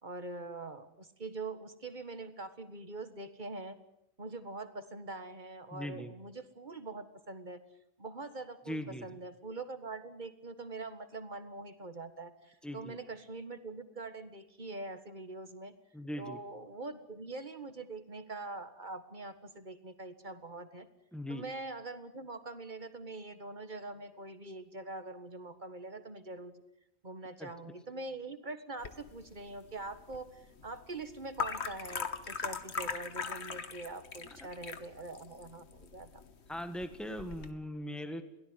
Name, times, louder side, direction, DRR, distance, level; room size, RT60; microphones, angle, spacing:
voice 1, 0.0-3.8 4.2-7.6 8.0-15.7 16.2-20.9 21.3-26.5 27.0-36.2, right 2 dB, 45° right, 10 dB, 1.8 m, -44 dB
voice 2, 5.7-6.1 8.7-9.1 12.6-13.0 15.9-16.4 21.1-21.4 27.4-27.8 36.5-38.2, equal, ahead, 8 dB, 1.7 m, -40 dB
sound 1, 28.8-37.5, left 5 dB, 70° left, 1.6 m, -41 dB
22.5 x 17.5 x 9.7 m, 0.81 s
omnidirectional pair, 1.2 m